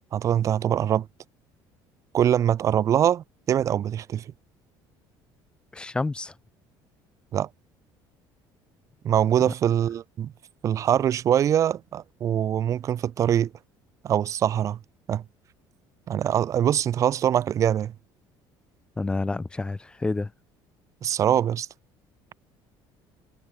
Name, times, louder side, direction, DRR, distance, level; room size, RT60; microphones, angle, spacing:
voice 1, 0.1-1.1 2.1-4.3 7.3-7.5 9.0-10.3 10.6-13.5 14.0-14.8 15.1-15.2 16.1-17.9 21.0-21.7, right 10 dB, 35° right, 5.9 m, -23 dB
voice 2, 5.7-6.3 9.5-9.6 19.0-20.3, left 3 dB, 10° left, 3.7 m, -29 dB
cardioid pair, 165°, 9 cm